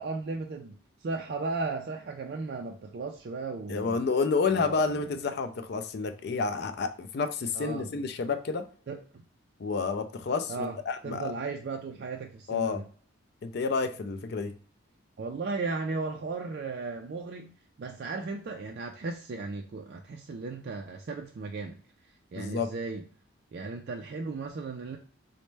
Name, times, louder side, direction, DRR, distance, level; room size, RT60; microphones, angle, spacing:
voice 1, 0.0-4.0 4.5-5.1 7.5-7.9 8.9-9.0 10.5-10.8 11.0-12.9 15.2-21.8 22.3-23.0 23.5-25.0, right 3 dB, 50° right, 2 dB, 0.3 m, -36 dB
voice 2, 3.7-8.7 9.6-11.3 12.5-12.8 13.4-14.5 22.3-22.7, left 4 dB, 50° left, 9 dB, 0.4 m, -29 dB
4.2 x 2.1 x 3.2 m, 0.43 s
head